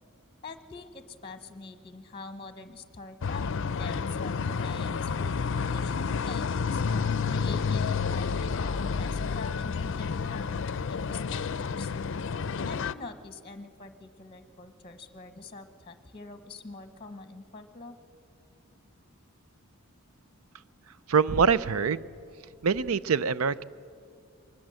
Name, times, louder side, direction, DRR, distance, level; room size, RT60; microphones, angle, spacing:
voice 1, 0.4-6.8 7.3-11.9 12.6-18.0, left 3 dB, 25° left, 9 dB, 1.0 m, -45 dB
sound 1, 3.2-12.9, left 5 dB, 60° left, 0.5 m, -30 dB
voice 2, 21.1-22.1 22.6-23.6, right 6 dB, 85° right, 17 dB, 0.5 m, -24 dB
22.5 x 19.5 x 7.6 m, 2.4 s
head